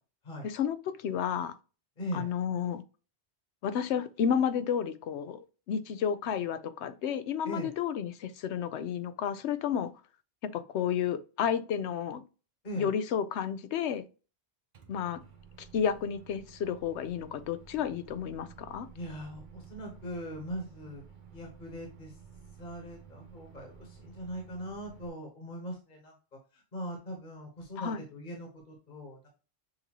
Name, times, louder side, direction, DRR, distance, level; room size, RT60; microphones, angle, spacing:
voice 1, 0.4-1.5 2.1-2.8 3.6-9.9 10.5-12.2 12.8-14.0 14.9-15.2 15.6-18.9 27.8-28.0, left 8 dB, 85° left, 0.9 m, -31 dB
voice 2, 2.0-2.3 7.4-7.7 12.6-12.9 18.9-21.0 21.3-22.1 22.6-26.1 26.5-29.3, equal, 45° left, 1.4 m, -40 dB
Microwave oven, 14.7-25.1, right 7 dB, 50° right, 0.9 m, -53 dB
6.5 x 2.6 x 2.9 m
omnidirectional pair, 1.1 m